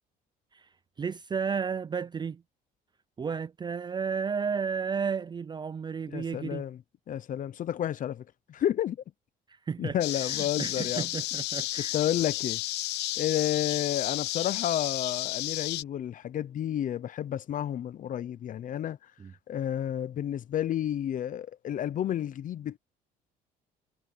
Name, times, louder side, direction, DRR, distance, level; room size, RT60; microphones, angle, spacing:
voice 1, 1.0-2.4 3.2-6.6 9.5-12.0 19.2-19.3, right 6 dB, 25° right, 0.5 m, -33 dB
voice 2, 6.1-6.8 7.1-8.2 8.5-9.0 9.8-11.1 11.8-12.6 13.2-19.0 19.5-22.8, left 11 dB, 50° left, 0.8 m, -31 dB
sound 1, 10.0-15.8, left 17 dB, 85° left, 0.9 m, -32 dB
cardioid pair, 110°, 17 cm